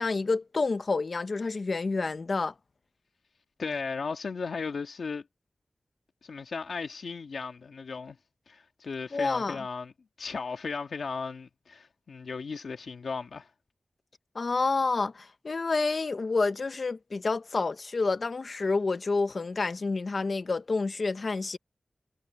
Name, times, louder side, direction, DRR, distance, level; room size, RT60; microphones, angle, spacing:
voice 1, 0.0-2.5 9.1-9.6 14.3-21.6, left 3 dB, 55° left, 1.2 m, -29 dB
voice 2, 3.6-5.2 6.2-8.2 8.5-9.9 10.2-13.5, left 5 dB, 85° left, 1.7 m, -36 dB
wide cardioid pair, 95°, 0 cm